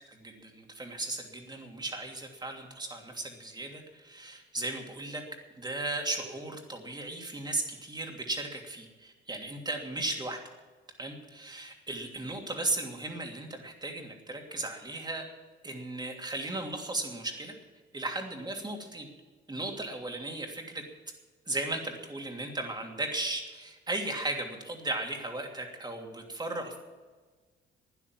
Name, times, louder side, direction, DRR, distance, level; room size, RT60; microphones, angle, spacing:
voice 1, 0.1-5.2 5.6-10.4 11.0-15.3 15.6-17.5 17.9-19.1 19.5-20.8 21.5-26.8, right 2 dB, 20° right, 2 dB, 2.9 m, -36 dB
12.0 x 9.9 x 9.5 m, 1.3 s
cardioid pair, 90°, 20 cm